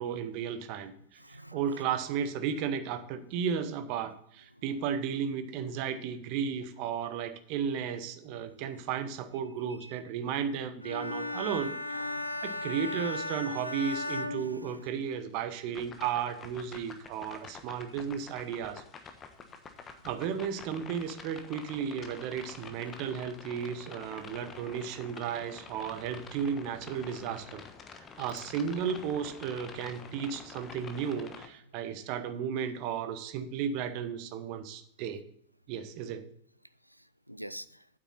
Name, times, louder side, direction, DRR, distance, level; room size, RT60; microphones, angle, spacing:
voice 1, 0.0-11.8 12.4-18.8 20.0-27.6 28.2-35.2 35.7-36.3, right 7 dB, 45° right, 10 dB, 1.1 m, -34 dB
voice 2, 1.2-1.6 4.5-4.6 9.8-9.9 11.9-12.6 14.3-14.8 37.3-37.8, equal, 90° right, 15 dB, 0.4 m, -46 dB
Bowed string instrument, 10.8-15.3, left 2 dB, 85° left, 0.7 m, -36 dB
sound 1, 15.7-31.5, left 5 dB, 25° left, 1.2 m, -48 dB
9.3 x 8.0 x 4.1 m, 0.67 s
figure-of-eight pair, 90°, 0 cm